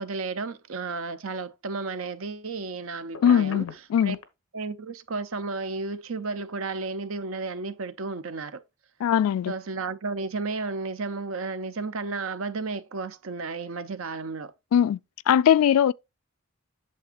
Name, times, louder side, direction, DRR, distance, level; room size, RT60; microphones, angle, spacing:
voice 1, 0.0-3.7 4.0-4.2 4.5-8.6 9.5-14.5, right 3 dB, 70° right, 0.7 m, -33 dB
Telephone, 3.1-4.3, left 5 dB, 70° left, 1.1 m, -38 dB
voice 2, 3.2-4.2 9.0-9.5 14.7-15.0 15.3-15.9, left 9 dB, 90° left, 0.3 m, -20 dB
8.5 x 7.0 x 2.5 m
head